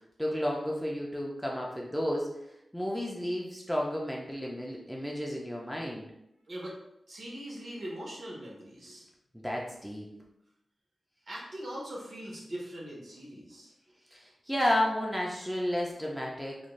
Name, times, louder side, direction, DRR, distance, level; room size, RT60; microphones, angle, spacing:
voice 1, 0.2-2.3 2.7-6.1 9.3-10.1 14.1-16.6, left 1 dB, ahead, -2 dB, 0.4 m, -32 dB
voice 2, 6.5-6.8 7.1-9.1 11.3-13.7, right 1 dB, 55° right, -4 dB, 0.9 m, -41 dB
2.5 x 2.2 x 3.0 m, 0.82 s
wide cardioid pair, 115°, 0 cm